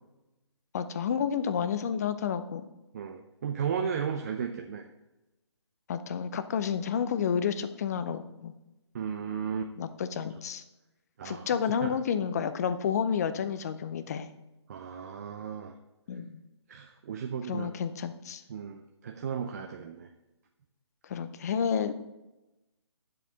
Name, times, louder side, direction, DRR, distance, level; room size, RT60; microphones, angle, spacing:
voice 1, 0.7-2.6 5.9-8.5 9.8-10.6 11.2-14.3 16.1-16.4 17.5-18.4 21.0-22.0, left 7 dB, 35° left, 11 dB, 0.6 m, -30 dB
voice 2, 2.9-4.8 8.9-9.7 11.2-11.5 11.8-12.0 14.7-15.7 16.7-17.7 18.5-20.1, right 7 dB, 35° right, 5 dB, 0.5 m, -34 dB
10.5 x 7.6 x 4.0 m, 0.99 s
figure-of-eight pair, 145°, 15 cm